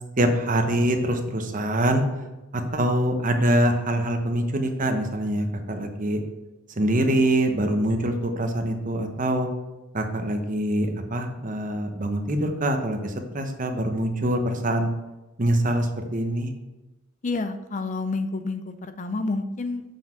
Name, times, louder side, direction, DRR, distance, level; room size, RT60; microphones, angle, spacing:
voice 1, 0.2-2.0 2.5-6.2 6.8-9.5 9.9-14.9 15.4-16.5, right 1 dB, 40° right, 5 dB, 1.0 m, -24 dB
voice 2, 17.2-19.8, left 3 dB, 35° left, 9 dB, 0.5 m, -29 dB
7.1 x 5.9 x 5.8 m, 1.0 s
head